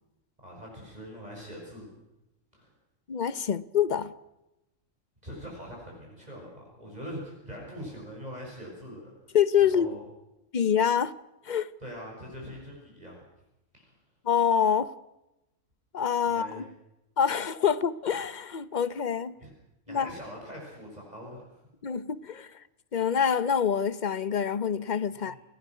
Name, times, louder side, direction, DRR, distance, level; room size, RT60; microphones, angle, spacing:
voice 1, 0.4-1.9 2.5-2.7 5.2-9.4 9.7-10.0 11.8-13.2 13.7-13.9 16.3-16.6 19.4-19.5 19.9-21.4 25.2-25.4, equal, 30° right, 6.4 m, -43 dB
voice 2, 3.1-4.1 9.3-10.0 10.5-11.1 11.4-11.7 14.2-14.9 15.9-16.7 17.2-19.3 19.9-20.1 21.8-22.5 22.9-25.4, left 7 dB, 40° left, 0.9 m, -26 dB
29.5 x 18.0 x 6.1 m
omnidirectional pair, 1.4 m